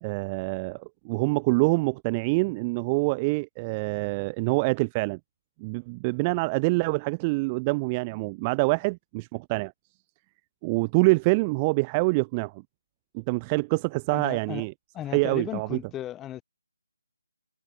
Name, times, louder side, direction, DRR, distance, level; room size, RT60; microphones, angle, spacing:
voice 1, 0.0-5.2 5.6-9.7 10.6-12.6 13.1-14.7 15.1-15.8, right 27 dB, 20° right, 0.9 m, -26 dB
voice 2, 14.1-14.6 14.9-16.4, left 12 dB, 10° left, 5.6 m, -35 dB
figure-of-eight pair, 155°, 0 cm